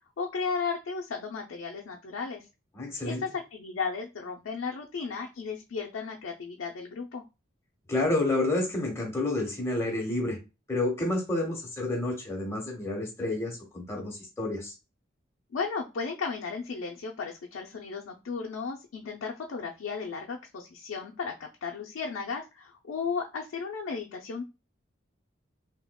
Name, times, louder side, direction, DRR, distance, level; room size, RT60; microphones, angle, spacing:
voice 1, 0.2-2.4 3.0-7.2 15.5-24.4, left 5 dB, 85° left, 0 dB, 0.5 m, -35 dB
voice 2, 2.7-3.2 7.9-10.4 10.7-14.7, left 2 dB, 15° left, -2 dB, 1.0 m, -29 dB
3.5 x 2.8 x 2.2 m, 0.28 s
head